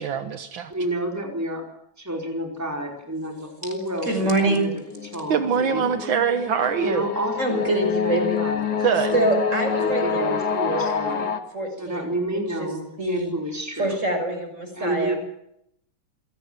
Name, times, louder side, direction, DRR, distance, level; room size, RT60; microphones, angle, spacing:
voice 1, 0.0-0.7 5.3-7.1 8.8-9.1, right 7 dB, 75° right, 9 dB, 2.0 m, -23 dB
voice 2, 0.7-1.6 2.0-4.7 5.1-5.8 6.8-7.7 8.0-9.2 9.7-11.3 11.8-14.0 14.7-15.1, right 1 dB, 10° right, 2 dB, 4.8 m, -30 dB
voice 3, 4.1-4.7 7.4-8.4 9.1-12.1 12.6-12.7 13.0-13.3 13.8-15.2, right 2 dB, 35° right, 5 dB, 6.7 m, -25 dB
sound 1, 4.7-11.4, left 6 dB, 55° left, 2.1 m, -27 dB
27.5 x 18.0 x 9.5 m, 0.77 s
omnidirectional pair, 2.2 m